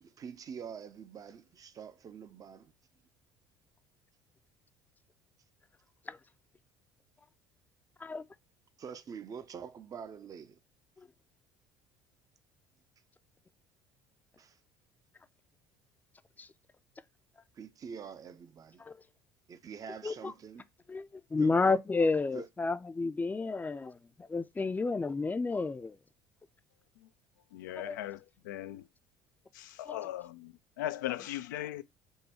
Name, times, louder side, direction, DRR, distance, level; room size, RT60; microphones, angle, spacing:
voice 1, 0.0-2.7 8.8-10.6 14.4-14.6 17.5-18.8 19.5-20.6 21.4-21.6 22.3-22.5, right 7 dB, 40° right, 0.6 m, -45 dB
voice 2, 20.0-20.3 20.9-26.0 27.8-28.0 29.9-30.0, left 3 dB, 20° left, 0.5 m, -31 dB
voice 3, 27.5-28.9 29.5-31.8, left 13 dB, 80° left, 0.4 m, -39 dB
5.5 x 2.2 x 4.3 m
hypercardioid pair, 70°, 10 cm